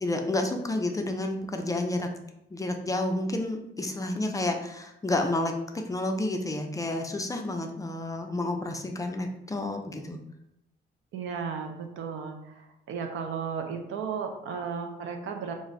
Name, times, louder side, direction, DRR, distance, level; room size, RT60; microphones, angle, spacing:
voice 1, 0.0-2.1 2.5-5.5 5.9-10.2, left 2 dB, 15° left, 4 dB, 0.3 m, -30 dB
voice 2, 11.1-15.5, right 6 dB, 80° right, 4 dB, 0.5 m, -34 dB
2.5 x 2.1 x 3.8 m, 0.86 s
cardioid pair, 90°, 20 cm